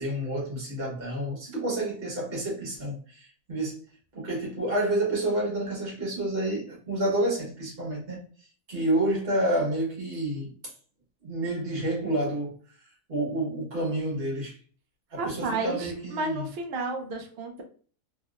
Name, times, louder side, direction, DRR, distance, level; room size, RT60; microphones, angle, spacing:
voice 1, 0.0-3.8 4.1-8.2 8.7-10.5 11.2-12.5 13.1-14.5 15.1-16.5, right 1 dB, 40° right, 1.3 m, -29 dB
voice 2, 15.2-17.6, right 3 dB, 85° right, 0.5 m, -32 dB
3.0 x 2.8 x 2.4 m
omnidirectional pair, 1.7 m